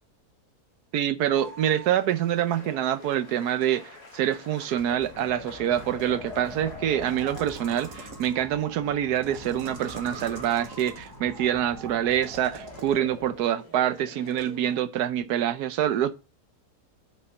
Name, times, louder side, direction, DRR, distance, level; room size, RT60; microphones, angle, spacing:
voice 1, 0.9-16.2, right 10 dB, 90° right, 1.3 m, -26 dB
sound 1, 1.3-14.8, left 1 dB, 90° left, 2.8 m, -49 dB
Wind, 4.7-13.4, left 1 dB, 15° right, 2.6 m, -42 dB
sound 2, 7.1-8.5 9.1-11.2 12.1-13.0 14.3-14.5, right 5 dB, 55° right, 1.5 m, -46 dB
6.6 x 5.5 x 6.3 m
omnidirectional pair, 1.6 m